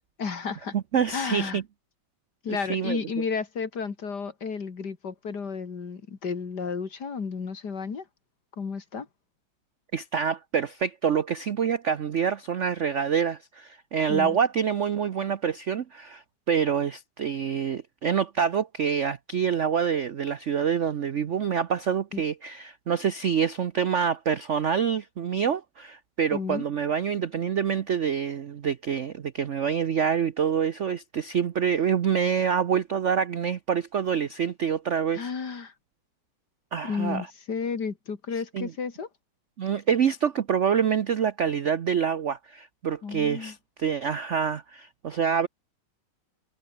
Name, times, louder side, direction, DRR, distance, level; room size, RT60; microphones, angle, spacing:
voice 1, 0.2-0.8 1.1-1.6 2.4-8.1 8.6-9.1 14.1-14.4 22.1-22.2 26.3-26.6 35.1-35.7 36.8-39.1 43.0-43.5, left 5 dB, 50° left, 2.8 m, -32 dB
voice 2, 0.7-1.6 2.5-3.0 9.9-35.2 36.7-37.3 38.5-38.7 39.6-45.5, right 7 dB, 75° right, 0.6 m, -26 dB
omnidirectional pair, 2.4 m